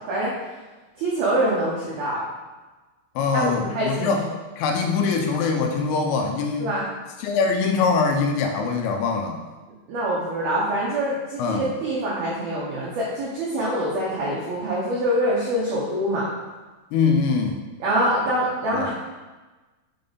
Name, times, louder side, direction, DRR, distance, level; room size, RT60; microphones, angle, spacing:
voice 1, 1.0-2.2 3.3-4.2 6.6-6.9 9.9-16.3 17.8-18.9, right 1 dB, 80° right, -6 dB, 2.1 m, -25 dB
voice 2, 3.2-4.2 4.6-6.7 7.2-9.4 11.4-11.7 16.9-17.6 18.7-18.9, left 4 dB, 80° left, 3 dB, 3.1 m, -23 dB
7.5 x 4.1 x 5.2 m, 1.2 s
omnidirectional pair, 6.0 m